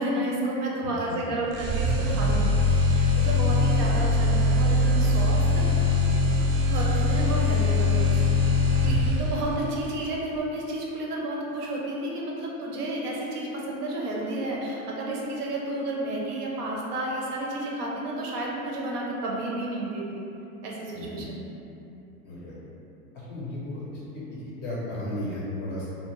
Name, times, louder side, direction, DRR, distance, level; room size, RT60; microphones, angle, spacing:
voice 1, 0.0-5.6 6.7-20.2 20.6-21.5, right 1 dB, 80° right, -3 dB, 0.8 m, -31 dB
voice 2, 0.8-1.3 3.4-3.7 9.2-9.3 20.9-21.2 22.2-22.6 23.1-23.8 24.1-25.9, left 1 dB, 25° left, -7 dB, 0.4 m, -35 dB
sound 1, 1.5-9.5, left 2 dB, 45° right, 0.4 m, -22 dB
2.5 x 2.1 x 2.9 m, 2.9 s
hypercardioid pair, 120°, 46 cm